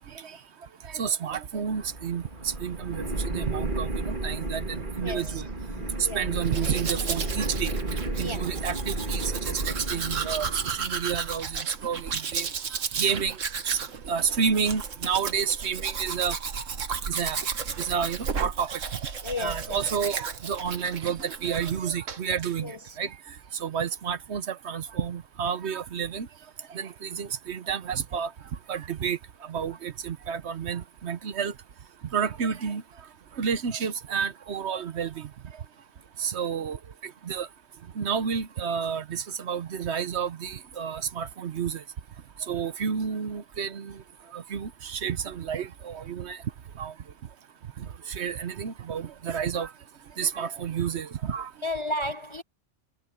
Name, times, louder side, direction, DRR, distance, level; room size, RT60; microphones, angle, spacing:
voice 1, 0.9-2.2 2.6-5.4 6.1-7.7 8.2-9.6 9.9-12.5 13.0-13.4 13.6-13.8 14.1-16.4 17.1-17.4 17.8-18.8 19.4-23.1 23.6-26.3 26.7-28.3 28.7-29.2 29.5-31.5 32.1-32.8 33.4-35.2 36.2-36.8 37.3-37.5 38.0-41.8 42.5-44.0 44.3-46.4 46.8-46.9 48.1-49.7 50.2-51.5, right 7 dB, 60° right, 1.1 m, -30 dB
sound 1, 1.5-11.1, right 2 dB, 40° right, 2.8 m, -33 dB
voice 2, 5.0-5.4 5.7-6.2 8.1-8.5 19.2-19.8 22.6-22.9 51.6-52.4, left 2 dB, 30° left, 0.6 m, -34 dB
Domestic sounds home sounds, 6.4-21.8 22.1-22.5, right 6 dB, 85° right, 1.7 m, -34 dB
omnidirectional pair, 1.3 m